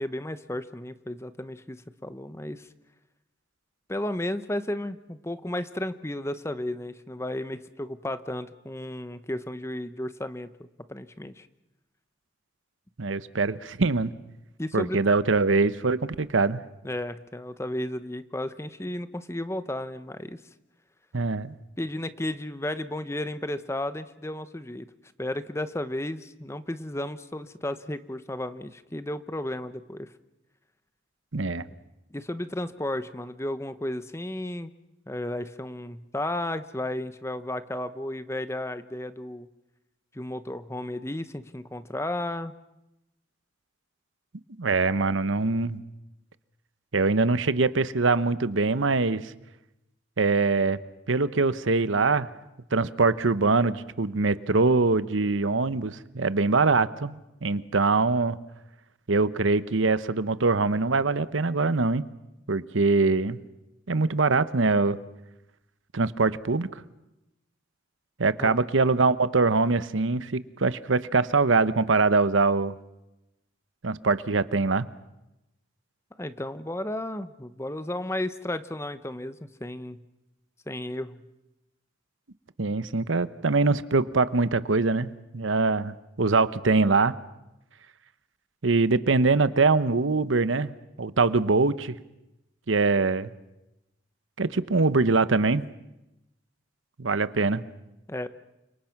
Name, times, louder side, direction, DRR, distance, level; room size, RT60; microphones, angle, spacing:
voice 1, 0.0-2.7 3.9-10.5 10.9-11.5 14.6-15.0 16.8-20.4 21.8-24.9 25.2-30.1 32.1-34.7 35.1-39.5 40.1-42.5 68.4-68.6 76.2-80.0 80.7-81.2 98.1-98.3, left 1 dB, 15° left, 12 dB, 0.9 m, -33 dB
voice 2, 13.0-14.1 14.7-16.6 21.1-21.5 31.3-31.6 44.6-45.8 46.9-49.3 50.2-50.8 51.1-52.3 52.7-58.4 59.1-62.0 62.5-63.4 63.9-65.0 65.9-66.7 68.2-72.8 73.8-74.9 82.6-87.1 88.6-90.7 91.0-92.0 92.7-93.3 94.4-95.7 97.0-97.6, right 3 dB, 90° right, 15 dB, 0.9 m, -23 dB
29.0 x 26.0 x 6.0 m, 0.92 s
head